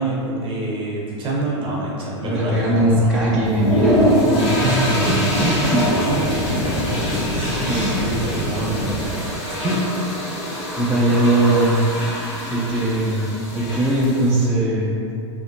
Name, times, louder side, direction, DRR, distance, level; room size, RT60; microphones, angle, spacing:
voice 1, 0.0-2.9 3.2-3.3 4.5-5.2 5.6-5.7 6.0-6.1 7.3-9.0 9.5-9.8, right 2 dB, 35° right, -4 dB, 0.8 m, -26 dB
voice 2, 2.2-5.9 7.7-8.2 10.8-11.8 12.5-13.2 13.5-15.0, right 1 dB, 5° left, -10 dB, 0.5 m, -20 dB
sound 1, 2.5-9.1, left 1 dB, 80° left, 0.5 m, -28 dB
sound 2, 3.4-14.4, equal, 55° left, 1.4 m, -25 dB
3.3 x 2.5 x 2.6 m, 2.6 s
hypercardioid pair, 110°, 15 cm